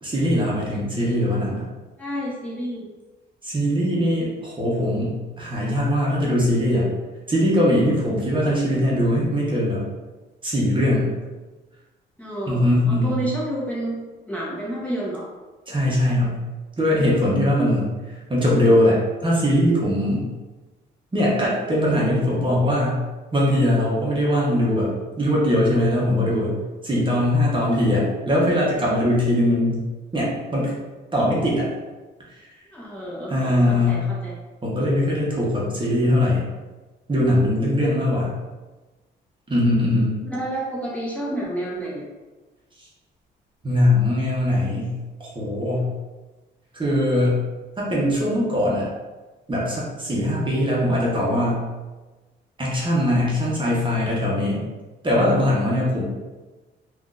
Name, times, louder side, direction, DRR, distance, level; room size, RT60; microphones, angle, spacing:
voice 1, 0.0-1.7 3.4-6.9 7.3-9.8 10.4-11.1 12.5-13.2 15.7-16.3 16.8-20.3 21.1-23.0 23.3-26.5 26.8-29.8 30.1-30.7 31.1-31.7 33.3-34.0 34.6-36.4 37.1-38.3 39.5-40.2 43.6-44.9 45.2-45.9 46.7-47.4 47.8-48.9 49.5-51.6 52.6-54.7 55.0-56.0, left 1 dB, 25° right, -6 dB, 1.0 m, -21 dB
voice 2, 2.0-2.9 12.2-14.0 14.3-15.3 27.0-27.1 32.7-34.3 40.2-42.0 55.8-56.0, right 1 dB, 5° left, -6 dB, 1.1 m, -30 dB
3.5 x 2.6 x 2.5 m, 1.2 s
cardioid pair, 90°, 20 cm